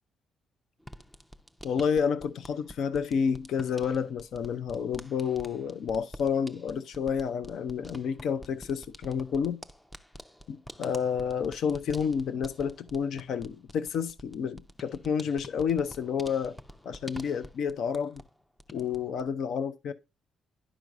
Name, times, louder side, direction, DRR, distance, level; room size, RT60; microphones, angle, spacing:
sound 1, 0.8-18.3 18.6-19.3, left 1 dB, 10° left, 0.6 m, -48 dB
voice 1, 1.6-9.6 10.5-16.6 16.8-18.2 18.7-19.9, left 7 dB, 70° left, 0.5 m, -30 dB
11.0 x 4.6 x 2.5 m
cardioid pair, 90°, 0 cm